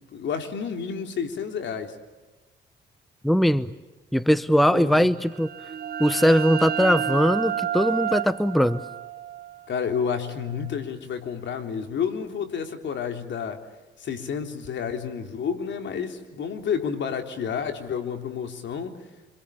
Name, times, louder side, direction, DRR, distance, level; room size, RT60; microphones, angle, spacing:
voice 1, 0.1-2.0 4.7-5.1 9.7-13.6 14.0-19.0, left 7 dB, 65° left, 6 dB, 3.6 m, -30 dB
voice 2, 3.2-3.7 4.1-5.5 6.0-8.8, equal, ahead, 15 dB, 0.9 m, -20 dB
sound 1, 5.2-10.7, right 9 dB, 50° right, 0.8 m, -31 dB
27.0 x 26.5 x 7.1 m, 1.1 s
cardioid pair, 90°, 20 cm